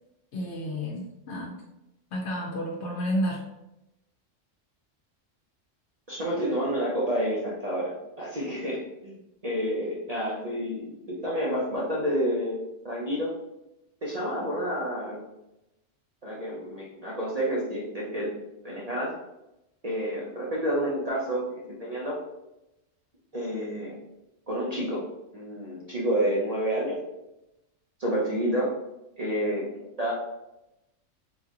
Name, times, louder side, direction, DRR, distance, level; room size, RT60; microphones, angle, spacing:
voice 1, 0.3-1.6 2.1-3.4, equal, 65° left, -2 dB, 0.9 m, -31 dB
voice 2, 6.1-9.1 9.4-12.6 12.8-13.3 14.0-15.2 16.2-18.3 18.6-19.1 19.8-22.2 23.3-24.0 24.5-25.0 25.3-27.0 28.0-28.7 29.2-29.7 30.0-30.1, equal, 40° right, -5 dB, 0.6 m, -29 dB
3.9 x 2.9 x 2.5 m, 0.90 s
omnidirectional pair, 1.3 m